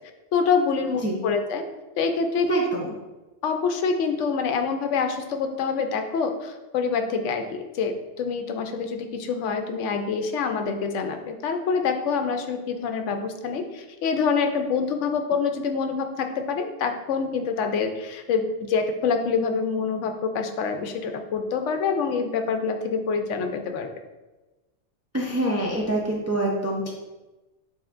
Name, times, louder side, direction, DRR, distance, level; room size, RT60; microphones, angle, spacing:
voice 1, 0.3-1.6 2.0-2.5 3.4-23.9, left 5 dB, 80° left, 6 dB, 0.9 m, -26 dB
voice 2, 2.5-2.9 25.1-26.9, right 1 dB, 25° right, -2 dB, 0.3 m, -25 dB
6.9 x 3.2 x 2.5 m, 1.1 s
omnidirectional pair, 1.2 m